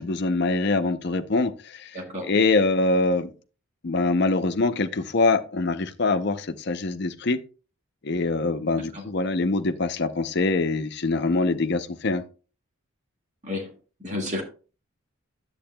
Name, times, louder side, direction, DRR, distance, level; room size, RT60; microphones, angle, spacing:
voice 1, 0.0-3.3 3.8-7.4 8.0-12.2, left 3 dB, 50° left, 0.6 m, -24 dB
voice 2, 1.9-2.3 8.9-9.0 13.4-13.7 14.0-14.4, left 2 dB, 35° right, 1.8 m, -31 dB
10.5 x 7.9 x 2.2 m
head